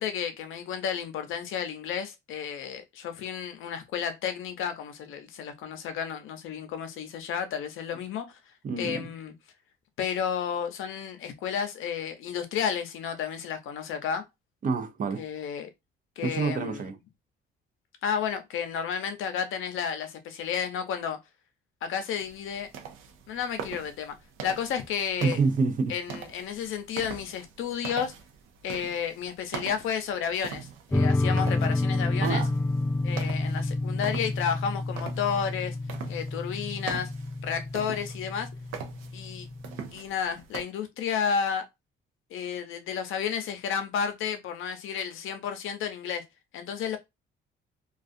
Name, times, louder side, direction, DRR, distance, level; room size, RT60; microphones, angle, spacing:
voice 1, 0.0-8.4 8.8-9.3 10.0-14.2 15.2-15.7 16.2-16.9 18.0-21.2 21.8-22.7 23.3-24.2 24.4-25.4 25.9-28.1 28.6-32.4 33.0-35.8 36.1-37.1 37.4-38.5 39.1-39.5 39.9-41.7 42.3-46.2 46.5-47.0, left 7 dB, 75° left, 0.6 m, -32 dB
voice 2, 8.6-9.0 14.6-15.3 16.2-17.0 25.2-26.2 32.2-32.5, right 4 dB, 40° right, 0.5 m, -27 dB
sound 1, 22.2-40.6, right 7 dB, 85° right, 0.5 m, -43 dB
sound 2, 30.9-39.9, left 2 dB, 10° left, 0.4 m, -29 dB
2.4 x 2.3 x 2.5 m
cardioid pair, 85°, 21 cm